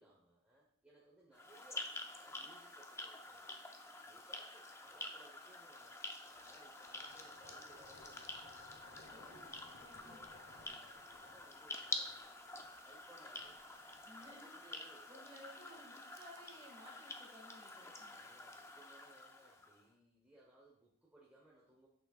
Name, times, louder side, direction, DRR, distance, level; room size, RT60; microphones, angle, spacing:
voice 1, 0.0-3.6 4.0-8.4 8.8-9.6 10.0-12.3 12.8-15.1 17.6-21.9, right 2 dB, 5° right, -5 dB, 1.0 m, -65 dB
sound 1, 1.3-19.8, left 2 dB, 15° left, 0.5 m, -49 dB
sound 2, 6.4-14.6, left 2 dB, 65° left, 1.0 m, -62 dB
voice 2, 9.1-10.3 14.1-14.8 15.1-18.3, equal, 25° right, -2 dB, 1.9 m, -58 dB
8.3 x 6.5 x 2.4 m, 0.68 s
head